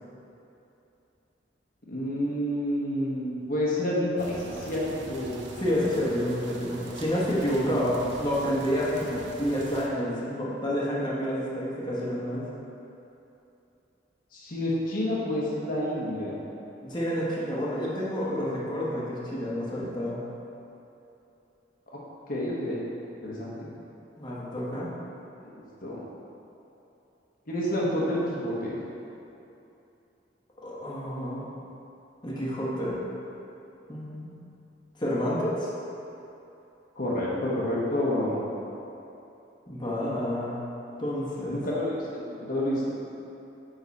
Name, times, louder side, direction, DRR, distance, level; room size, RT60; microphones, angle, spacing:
voice 1, 1.9-5.4 7.5-7.8 14.3-16.4 22.3-22.8 23.2-23.7 25.5-26.0 27.5-28.8 37.0-38.4 41.5-42.9, left 1 dB, 55° left, -6 dB, 1.1 m, -29 dB
sound 1, 4.2-9.9, right 2 dB, 90° right, 0.8 m, -43 dB
voice 2, 5.6-12.5 16.8-20.2 24.2-24.9 30.6-31.4 32.2-33.0 33.9-34.3 35.0-35.7 39.7-40.6 41.0-41.6, equal, 25° left, -7 dB, 1.2 m, -29 dB
9.4 x 3.8 x 4.1 m, 2.8 s
head